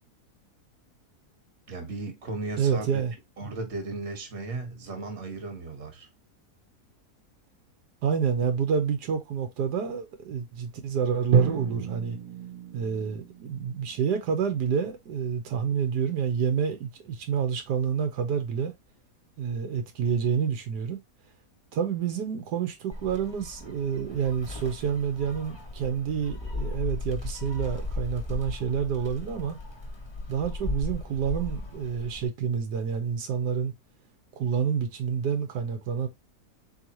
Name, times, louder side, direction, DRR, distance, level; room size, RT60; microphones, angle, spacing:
voice 1, 1.7-3.0 3.4-6.1, right 3 dB, 45° right, 1.5 m, -35 dB
voice 2, 2.6-3.1 8.0-12.2 12.7-18.7 19.4-21.0 21.7-29.6 30.3-33.7 34.3-36.1, right 7 dB, 90° right, 1.5 m, -28 dB
Drum, 11.3-15.3, right 7 dB, 65° right, 1.4 m, -32 dB
Gull seagull, 22.9-32.3, left 2 dB, 20° left, 0.7 m, -36 dB
4.0 x 3.5 x 2.9 m
omnidirectional pair, 1.7 m